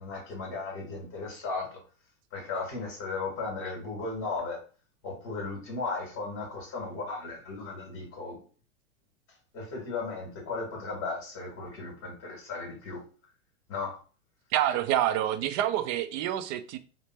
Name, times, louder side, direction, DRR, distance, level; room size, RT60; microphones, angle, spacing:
voice 1, 0.0-1.8 2.3-4.6 5.0-8.4 9.5-13.0 13.7-14.0, left 3 dB, 35° left, 1.5 m, -36 dB
voice 2, 14.5-16.8, right 12 dB, 35° right, 0.5 m, -27 dB
3.2 x 2.1 x 4.1 m
hypercardioid pair, 110°, 39 cm